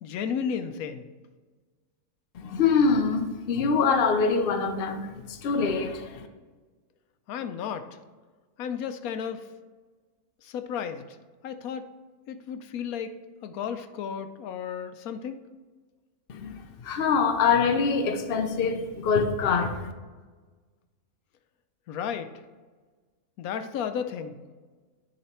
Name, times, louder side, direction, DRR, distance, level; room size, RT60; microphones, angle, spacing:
voice 1, 0.0-1.0 7.3-7.9 8.6-9.4 10.4-11.0 11.4-11.9 12.3-13.2 13.4-15.4 21.9-22.3 23.4-24.3, left 7 dB, 90° left, 9 dB, 1.1 m, -33 dB
voice 2, 2.3-6.3 16.3-16.5 16.8-19.9, left 5 dB, 50° left, 6 dB, 0.8 m, -24 dB
9.9 x 4.0 x 4.3 m, 1.4 s
omnidirectional pair, 1.5 m